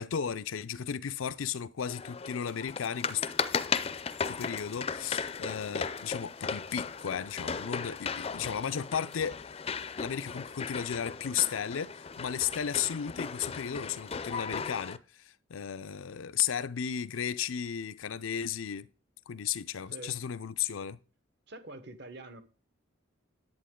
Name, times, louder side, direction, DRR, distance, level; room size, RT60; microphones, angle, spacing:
voice 1, 0.0-3.2 4.3-9.4 10.0-15.0 15.5-18.9 19.3-21.0, left 8 dB, 85° left, 0.5 m, -34 dB
sound 1, 1.9-15.0, left 5 dB, 30° left, 0.4 m, -36 dB
voice 2, 21.5-22.4, right 2 dB, 55° right, 1.1 m, -45 dB
10.5 x 8.2 x 3.7 m
head